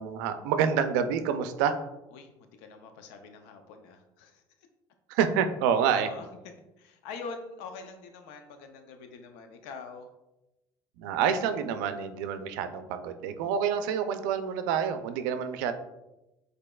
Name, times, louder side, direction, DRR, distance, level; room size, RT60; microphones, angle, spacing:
voice 1, 0.0-1.7 5.1-6.1 11.0-15.7, right 7 dB, 90° right, 9 dB, 0.4 m, -27 dB
voice 2, 2.1-4.4 6.0-6.3 6.8-10.1, left 4 dB, 85° left, 6 dB, 0.5 m, -44 dB
5.2 x 3.9 x 2.3 m, 0.96 s
supercardioid pair, 95°, 10 cm